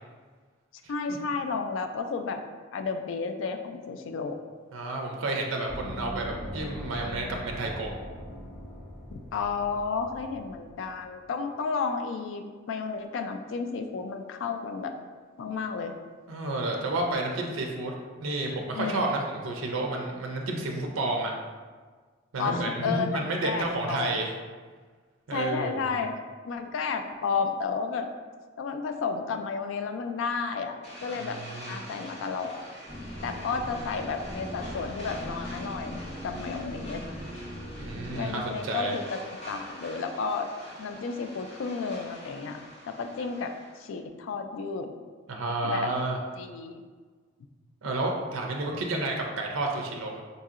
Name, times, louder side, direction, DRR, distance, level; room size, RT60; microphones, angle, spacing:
voice 1, 0.9-2.4 2.7-4.4 9.1-14.9 15.4-16.0 18.7-19.1 22.4-23.1 23.4-24.1 25.3-28.1 28.6-30.8 31.0-31.4 31.7-32.6 33.2-37.0 38.1-39.2 39.5-40.5 40.8-42.6 42.9-44.9 45.6-45.9 46.3-46.8, left 5 dB, 70° left, 6 dB, 0.3 m, -32 dB
voice 2, 4.7-7.9 16.3-21.3 22.3-24.3 25.3-26.0 31.2-31.8 37.8-39.0 45.3-46.2 47.8-50.2, right 2 dB, 85° right, 1 dB, 0.5 m, -31 dB
Gong, 5.7-10.9, equal, 5° left, 1.0 m, -40 dB
sound 1, 30.8-43.9, equal, 35° left, 0.7 m, -45 dB
sound 2, 32.9-38.3, equal, 30° right, 0.8 m, -40 dB
4.0 x 2.7 x 2.4 m, 1.5 s
head